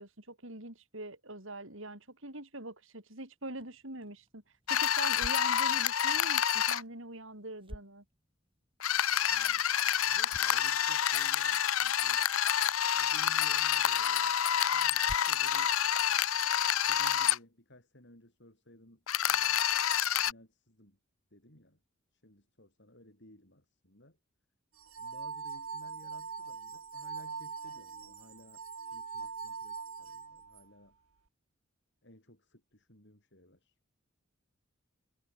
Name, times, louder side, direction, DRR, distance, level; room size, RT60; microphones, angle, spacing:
voice 1, 0.0-4.4 4.7-8.0, right 2 dB, 60° right, 6.5 m, -43 dB
sound 1, 3.4-17.0, equal, 25° right, 6.7 m, -54 dB
sound 2, 4.7-6.8 8.8-17.4 19.1-20.3, left 10 dB, 75° left, 0.9 m, -28 dB
voice 2, 9.2-9.7 10.0-12.3 13.0-14.4 14.7-15.7 16.9-19.7 20.3-21.0 21.3-21.8 22.1-24.2 25.0-31.0 32.0-33.8, left 1 dB, 55° left, 7.9 m, -58 dB
sound 3, 24.8-30.6, right 5 dB, 80° right, 1.4 m, -42 dB
head